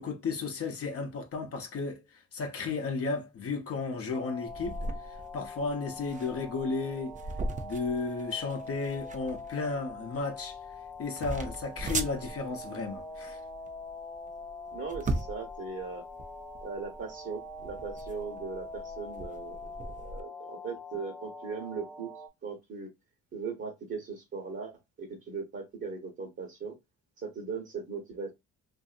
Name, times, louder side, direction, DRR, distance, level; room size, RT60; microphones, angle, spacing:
voice 1, 0.0-7.2 7.6-10.6 11.0-13.4, left 4 dB, 50° left, 0.8 m, -34 dB
sound 1, 4.1-22.3, left 2 dB, 10° left, 0.7 m, -44 dB
sound 2, 4.5-20.2, right 2 dB, 25° right, 0.5 m, -39 dB
voice 2, 14.7-16.0 16.6-22.1 22.4-22.9 23.3-24.7 25.0-26.7 27.2-28.3, right 5 dB, 45° right, 1.1 m, -39 dB
2.7 x 2.7 x 2.4 m
cardioid pair, 90°, 30 cm